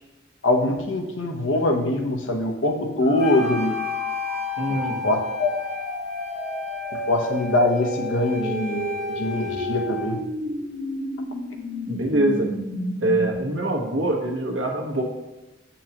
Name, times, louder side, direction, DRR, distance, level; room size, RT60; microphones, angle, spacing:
voice 1, 0.4-3.8 4.7-5.5 7.1-10.2, left 2 dB, 75° left, 3 dB, 0.9 m, -23 dB
sound 1, 3.0-13.3, right 1 dB, 30° left, 2.4 m, -32 dB
Wind instrument woodwind instrument, 3.2-10.1, left 5 dB, 5° right, 1.6 m, -32 dB
voice 2, 4.6-5.1 11.9-12.5 13.0-15.0, right 1 dB, 75° right, 0 dB, 1.3 m, -24 dB
8.4 x 5.5 x 2.9 m, 1.0 s
head